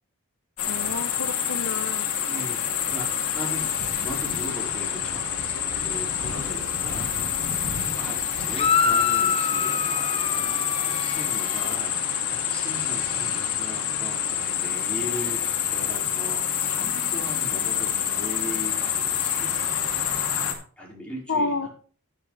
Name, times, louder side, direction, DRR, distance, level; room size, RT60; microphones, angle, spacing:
sound 1, 0.6-20.5, left 8 dB, 85° left, 2.2 m, -27 dB
voice 1, 0.7-2.1 21.3-21.7, left 3 dB, 65° left, 9 dB, 0.8 m, -29 dB
voice 2, 2.3-3.7 4.0-7.1 7.9-15.4 15.7-19.7 20.8-21.7, equal, 5° left, -4 dB, 4.8 m, -39 dB
sound 2, 8.5-11.8, left 6 dB, 25° left, 0.8 m, -26 dB
10.5 x 9.9 x 3.3 m, 0.41 s
head